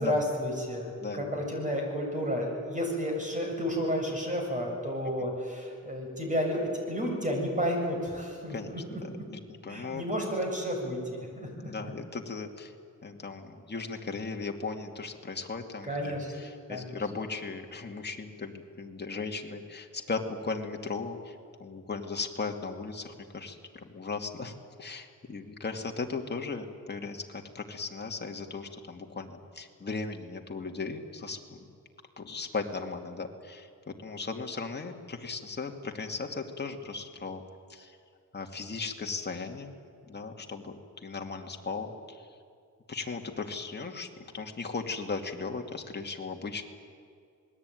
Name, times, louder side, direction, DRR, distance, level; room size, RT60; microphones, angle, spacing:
voice 1, 0.0-9.2 9.7-11.9 15.9-16.3 16.7-16.9, equal, 25° right, 1 dB, 7.3 m, -32 dB
voice 2, 1.0-1.4 8.5-8.7 9.0-10.0 11.6-12.7 13.0-24.5 24.8-31.7 32.2-37.4 37.7-38.0 38.3-39.7 40.1-42.3 42.9-46.6, left 4 dB, 35° left, 3 dB, 2.4 m, -37 dB
27.0 x 20.5 x 9.3 m, 2.3 s
wide cardioid pair, 145°, 31 cm